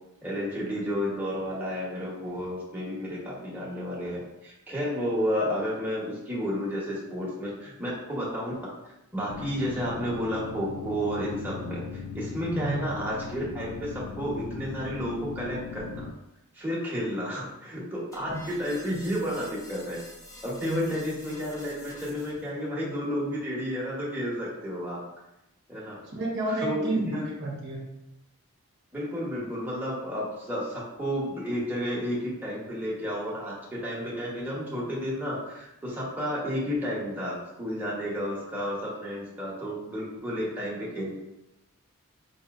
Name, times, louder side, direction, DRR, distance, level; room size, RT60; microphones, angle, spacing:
voice 1, 0.2-8.5 9.1-16.0 16.5-20.0 20.4-25.0 25.7-26.0 26.5-27.2 28.9-41.2, equal, 10° right, -7 dB, 0.9 m, -31 dB
sound 1, 9.3-16.1, left 5 dB, 85° left, 0.3 m, -39 dB
voice 2, 12.5-12.8 18.3-18.4 20.6-20.9 26.0-27.8, right 1 dB, 50° right, -3 dB, 0.7 m, -30 dB
sound 2, 18.1-22.5, left 1 dB, 15° left, 0.7 m, -48 dB
4.9 x 2.7 x 2.4 m, 0.92 s
head